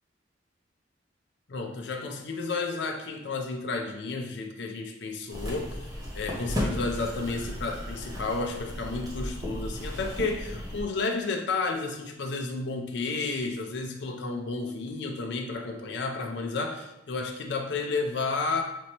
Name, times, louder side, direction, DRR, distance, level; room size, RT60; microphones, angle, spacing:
voice 1, 1.5-5.9 6.1-18.6, left 3 dB, 70° left, 3 dB, 0.5 m, -32 dB
sound 1, 5.3-10.8, left 1 dB, 20° right, 1.0 m, -35 dB
5.2 x 3.0 x 2.9 m, 0.90 s
head